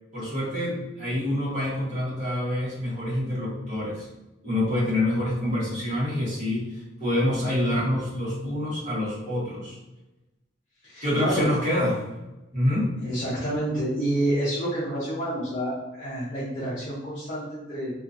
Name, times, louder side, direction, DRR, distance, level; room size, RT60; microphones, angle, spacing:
voice 1, 0.1-4.1 4.4-9.8 11.0-12.0 12.5-12.9, left 1 dB, 35° right, -8 dB, 1.3 m, -26 dB
voice 2, 10.8-11.5 13.0-17.9, right 1 dB, 35° left, -9 dB, 0.7 m, -29 dB
2.8 x 2.4 x 2.5 m, 1.0 s
head